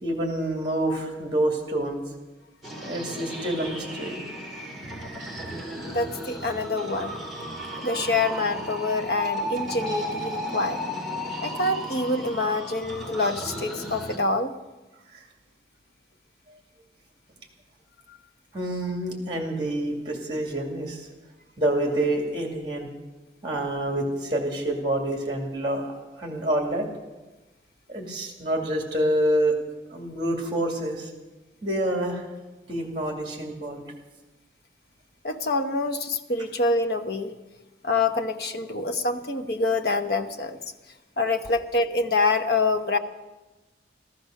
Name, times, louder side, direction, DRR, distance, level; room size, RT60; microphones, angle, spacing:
voice 1, 0.0-2.0 2.8-4.2 18.5-21.1 21.6-22.9 23.4-25.9 26.2-26.9 27.9-29.5 29.9-31.1 31.6-32.2 32.7-33.8, right 1 dB, 25° right, 2 dB, 2.3 m, -27 dB
sound 1, 2.6-14.2, equal, ahead, 2.9 m, -34 dB
voice 2, 5.8-7.2 7.8-10.8 11.4-14.5 18.1-18.2 35.2-37.3 37.8-40.6 41.2-43.0, left 3 dB, 60° left, 7 dB, 1.0 m, -26 dB
14.5 x 14.5 x 6.5 m, 1.1 s
head